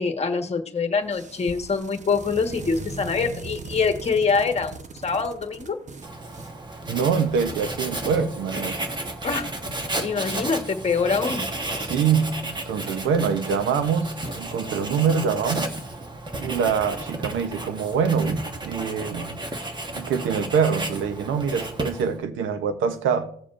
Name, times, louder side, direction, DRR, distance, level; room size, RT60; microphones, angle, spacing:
voice 1, 0.0-5.8 9.2-9.4 10.0-11.5, left 5 dB, 35° left, 1.3 m, -25 dB
sound 1, 1.0-7.5, right 4 dB, 40° right, 0.9 m, -40 dB
Writing, 6.0-22.2, right 1 dB, 25° right, 1.2 m, -33 dB
voice 2, 6.9-8.8 11.8-15.7 16.4-19.4 19.9-23.3, right 6 dB, 85° right, 0.8 m, -24 dB
17.0 x 6.9 x 2.5 m
cardioid pair, 100°, 20 cm